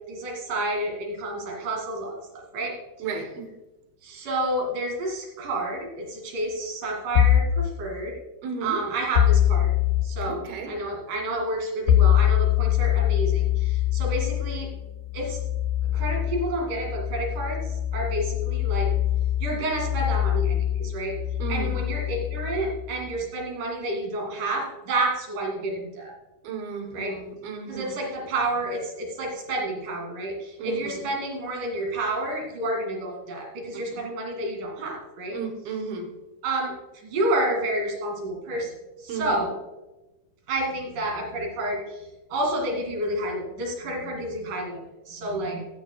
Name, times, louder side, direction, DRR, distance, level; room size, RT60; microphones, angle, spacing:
voice 1, 0.1-2.8 4.0-8.2 8.6-9.7 10.0-14.7 15.1-15.4 15.8-18.9 19.4-21.2 21.5-26.2 26.9-27.2 27.7-35.4 36.4-39.5 40.5-44.8 45.1-45.7, right 1 dB, 55° right, 0 dB, 3.8 m, -30 dB
voice 2, 3.0-3.5 8.4-8.8 10.2-10.7 21.4-21.8 26.4-28.0 30.6-31.1 33.7-34.0 35.3-36.1 39.1-39.4, right 5 dB, 75° right, 6 dB, 3.0 m, -34 dB
sound 1, 7.2-7.6 9.1-10.1 11.9-23.2, left 11 dB, 70° left, 2.1 m, -24 dB
13.5 x 13.5 x 2.3 m, 1.1 s
omnidirectional pair, 4.6 m